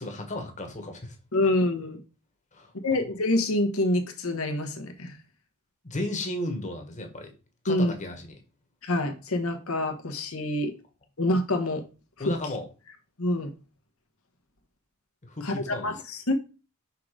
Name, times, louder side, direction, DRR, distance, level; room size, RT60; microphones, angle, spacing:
voice 1, 0.0-1.2 2.5-2.7 5.8-7.3 7.6-8.4 12.2-12.7 15.2-16.0, left 1 dB, 35° left, 1.4 m, -34 dB
voice 2, 1.3-2.0 2.8-5.2 7.7-7.9 8.8-10.7 11.2-11.8 13.2-13.5 15.4-16.3, left 1 dB, 75° left, 1.2 m, -26 dB
5.8 x 3.8 x 5.0 m
head